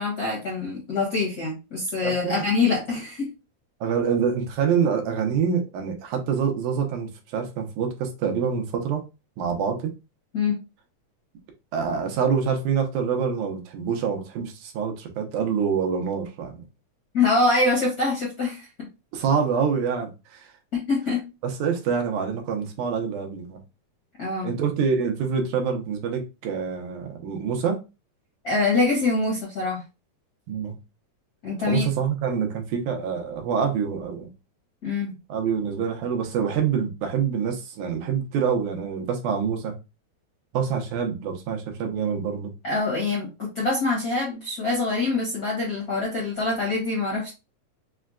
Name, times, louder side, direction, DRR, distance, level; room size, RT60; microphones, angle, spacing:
voice 1, 0.0-3.3 10.3-10.6 17.1-18.9 20.7-21.2 24.2-24.5 28.4-29.8 31.4-31.8 34.8-35.1 42.6-47.3, left 3 dB, 50° left, 1.2 m, -24 dB
voice 2, 2.0-2.4 3.8-9.0 9.4-9.9 11.7-16.6 19.1-20.5 21.4-23.6 24.4-27.8 30.5-30.8 31.7-34.3 35.3-39.7 40.5-42.5, right 6 dB, 85° right, 2.3 m, -26 dB
5.5 x 2.2 x 2.4 m
omnidirectional pair, 3.5 m